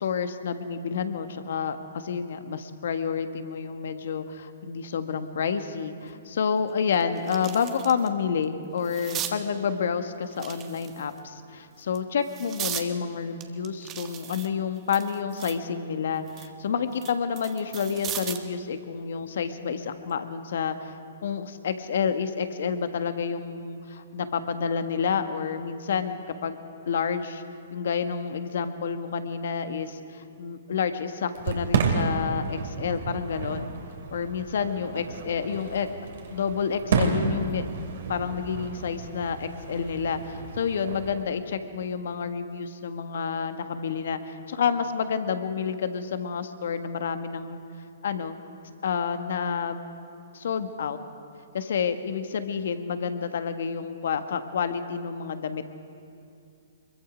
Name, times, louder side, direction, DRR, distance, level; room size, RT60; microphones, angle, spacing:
voice 1, 0.0-20.9 21.2-26.6 26.9-27.4 27.7-33.7 34.1-35.9 36.3-47.6 48.0-48.4 48.8-49.8 50.3-51.0 51.5-55.8, left 6 dB, 65° left, 9 dB, 1.4 m, -29 dB
sound 1, 6.1-6.2 6.7-8.1 8.4-9.4 10.3-11.2 11.8-12.9 13.4-15.7 16.1-18.5 19.9-20.1, right 11 dB, 25° right, 1.4 m, -37 dB
Fireworks, 31.3-41.2, right 5 dB, 60° right, 2.7 m, -31 dB
24.0 x 22.5 x 5.2 m, 2.6 s
hypercardioid pair, 125°, 0 cm